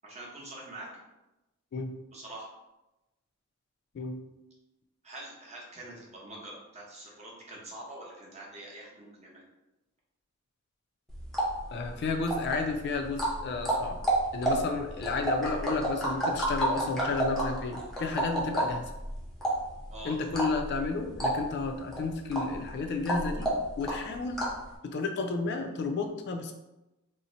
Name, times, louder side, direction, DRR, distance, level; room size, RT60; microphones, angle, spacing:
voice 1, 0.0-0.9 2.1-2.5 5.0-9.4 19.9-20.2, right 1 dB, 30° right, -4 dB, 0.8 m, -45 dB
voice 2, 3.9-4.3 11.7-14.0 14.3-18.9 20.0-24.4 24.8-26.5, left 3 dB, 55° left, 4 dB, 0.3 m, -32 dB
sound 1, 11.1-24.7, right 1 dB, ahead, 0.6 m, -31 dB
2.8 x 2.0 x 3.8 m, 0.98 s
head